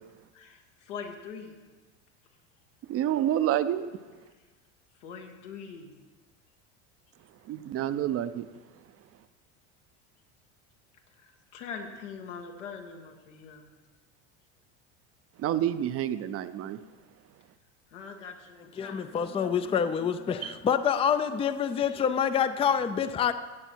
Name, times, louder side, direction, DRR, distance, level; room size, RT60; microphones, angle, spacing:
voice 1, 0.3-1.6 5.0-5.9 11.1-13.7 17.9-20.3, left 6 dB, 90° left, 1.9 m, -43 dB
voice 2, 2.8-3.9 7.4-8.5 15.4-16.8 20.4-20.6, right 11 dB, 40° right, 0.6 m, -28 dB
voice 3, 18.8-23.3, left 7 dB, 15° left, 0.4 m, -27 dB
16.0 x 8.1 x 4.5 m
supercardioid pair, 105°, 35 cm